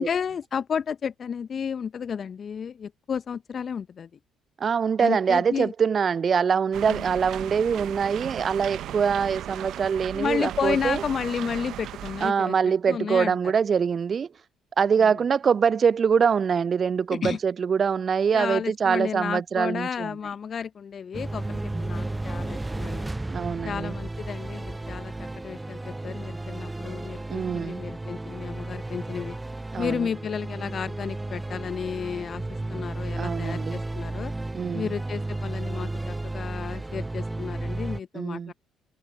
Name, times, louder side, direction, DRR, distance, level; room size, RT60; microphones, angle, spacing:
voice 1, 0.0-4.1 5.0-5.7 6.9-7.0 10.1-12.5 12.9-13.4 17.1-17.4 18.3-23.2 23.6-29.4 29.8-32.4 32.7-34.3 34.7-38.5, left 7 dB, 45° left, 1.0 m, -32 dB
voice 2, 4.6-11.0 12.2-14.3 14.8-20.2 23.3-24.0 27.3-27.8 29.7-30.1 33.2-33.8 34.5-35.0 38.1-38.5, right 6 dB, 40° right, 0.4 m, -24 dB
sound 1, 6.7-12.3, right 12 dB, 60° right, 1.1 m, -36 dB
sound 2, 21.1-38.0, right 2 dB, 15° right, 0.8 m, -33 dB
figure-of-eight pair, 45°, 0 cm